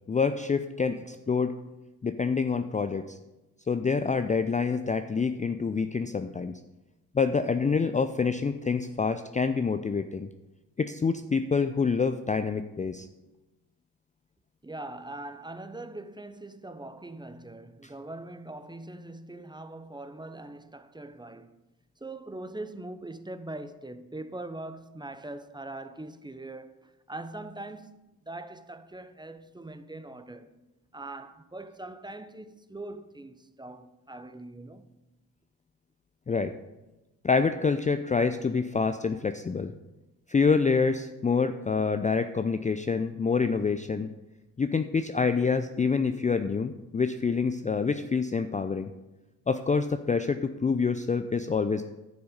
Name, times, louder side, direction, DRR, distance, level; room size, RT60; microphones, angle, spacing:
voice 1, 0.1-1.5 2.0-3.2 3.7-6.5 7.1-10.3 10.8-13.1 36.3-36.5 37.2-39.7 40.3-44.1 44.6-48.9 49.5-51.8, left 5 dB, 20° left, 0.5 m, -27 dB
voice 2, 14.6-21.6 22.0-30.6 30.9-34.9, right 2 dB, 10° right, 0.8 m, -42 dB
11.0 x 6.8 x 5.2 m
hypercardioid pair, 45°, 41 cm